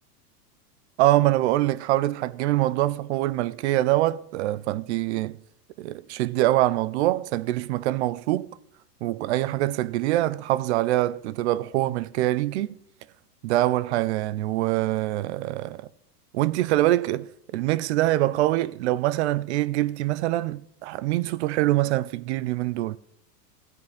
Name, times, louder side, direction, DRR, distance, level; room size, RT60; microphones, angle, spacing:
voice 1, 1.0-5.4 5.8-8.5 9.0-12.8 13.4-15.9 16.3-23.0, right 16 dB, 45° right, 0.6 m, -24 dB
14.5 x 5.4 x 9.4 m
supercardioid pair, 155°, 48 cm